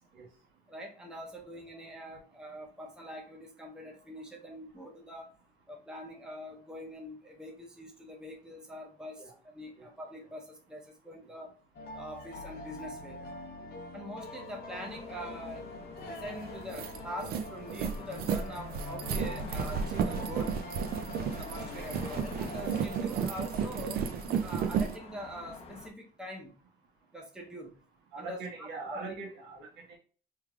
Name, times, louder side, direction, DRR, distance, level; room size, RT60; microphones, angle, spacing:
voice 1, 0.7-5.3 5.7-11.5 11.9-13.2 13.9-15.7 16.1-20.6 21.4-24.0 24.4-26.6 27.1-27.7 28.2-29.2, equal, 5° right, 0 dB, 0.7 m, -44 dB
sound 1, 11.7-23.0, left 2 dB, 65° left, 0.8 m, -44 dB
sound 2, 14.7-25.9, left 4 dB, 40° left, 0.7 m, -49 dB
sound 3, 16.1-16.2 16.5-25.0, right 7 dB, 65° right, 0.5 m, -33 dB
voice 2, 28.1-30.0, right 4 dB, 85° right, 0 dB, 1.3 m, -41 dB
3.5 x 3.3 x 2.3 m, 0.39 s
cardioid pair, 110°, 17 cm